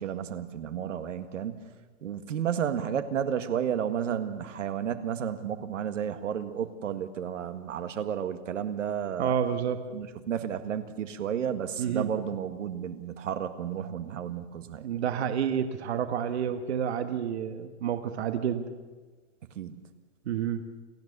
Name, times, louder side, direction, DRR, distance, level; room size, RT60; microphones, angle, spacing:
voice 1, 0.0-1.7 2.0-9.3 9.9-14.9 19.5-19.8, right 8 dB, 85° right, 9 dB, 1.8 m, -32 dB
voice 2, 9.2-9.8 11.8-12.1 14.8-18.6 20.2-20.6, right 8 dB, 60° right, 8 dB, 1.6 m, -29 dB
29.0 x 14.5 x 6.8 m, 1.3 s
hypercardioid pair, 170°, 37 cm